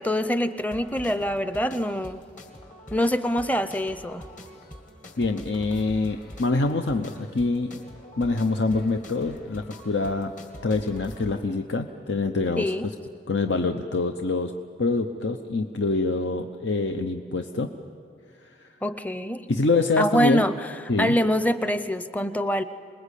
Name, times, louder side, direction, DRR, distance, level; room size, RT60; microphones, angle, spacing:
voice 1, 0.0-2.3 2.9-4.3 12.6-12.9 18.8-19.5 20.0-20.6 21.0-22.6, equal, 10° left, 12 dB, 0.6 m, -25 dB
sound 1, 0.7-11.4, equal, 45° left, 2.4 m, -45 dB
voice 2, 5.2-7.8 8.2-10.3 10.6-12.9 13.3-14.5 14.8-17.7 18.4-18.7 19.5-20.5 20.9-21.2, left 3 dB, 85° left, 6 dB, 0.8 m, -25 dB
27.0 x 20.5 x 8.4 m, 2.4 s
head